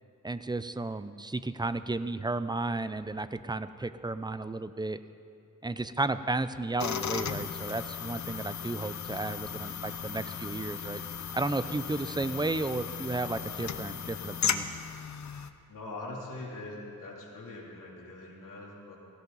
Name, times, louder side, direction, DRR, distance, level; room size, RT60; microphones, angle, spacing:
voice 1, 0.2-5.0 5.6-11.0 11.3-14.6, right 2 dB, 15° right, 12 dB, 0.5 m, -33 dB
sound 1, 6.8-15.5, left 7 dB, 65° left, 0.7 m, -36 dB
voice 2, 15.7-19.0, left 2 dB, 85° left, -3 dB, 3.0 m, -42 dB
17.5 x 16.0 x 4.0 m, 2.6 s
wide cardioid pair, 105°, 31 cm